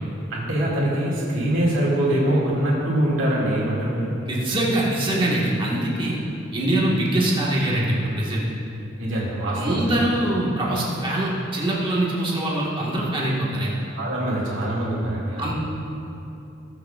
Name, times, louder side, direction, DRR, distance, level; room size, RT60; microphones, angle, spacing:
voice 1, 0.3-4.2 6.8-7.0 9.0-9.9 13.8-15.5, right 1 dB, 70° right, -5 dB, 2.3 m, -24 dB
voice 2, 4.3-6.2 6.5-8.4 9.5-13.8 15.4-15.5, right 1 dB, 25° right, -5 dB, 1.6 m, -23 dB
19.5 x 6.8 x 2.4 m, 2.8 s
head